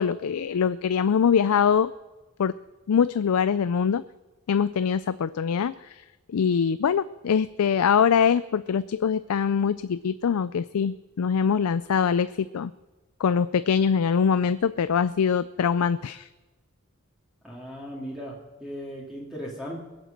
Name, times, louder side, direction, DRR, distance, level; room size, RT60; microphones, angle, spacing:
voice 1, 0.0-1.9 2.4-2.5 2.9-4.0 4.5-6.0 6.3-12.7 13.2-16.3, left 7 dB, 85° left, 14 dB, 0.4 m, -23 dB
voice 2, 17.4-19.8, equal, 5° right, -4 dB, 2.2 m, -37 dB
21.0 x 8.0 x 6.5 m, 1.2 s
head